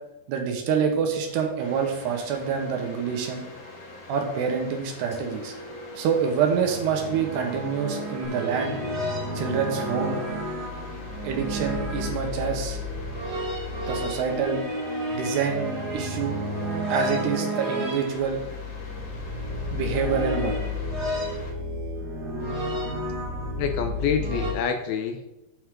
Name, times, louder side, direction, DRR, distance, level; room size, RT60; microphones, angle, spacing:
voice 1, 0.3-3.4 4.1-5.5 6.0-8.8 9.3-10.2 11.2-12.8 13.9-14.6 15.1-15.7 15.9-16.4 16.9-18.4 19.7-20.6, right 6 dB, 75° right, 3 dB, 3.4 m, -26 dB
Engine, 1.1-8.2, right 1 dB, 10° right, 2.7 m, -46 dB
sound 1, 1.6-21.5, left 3 dB, 55° left, 2.6 m, -44 dB
sound 2, 6.4-24.5, equal, 35° right, 1.7 m, -31 dB
voice 2, 23.6-25.3, left 6 dB, 75° left, 6 dB, 2.4 m, -27 dB
8.9 x 7.9 x 3.8 m, 0.92 s
omnidirectional pair, 4.8 m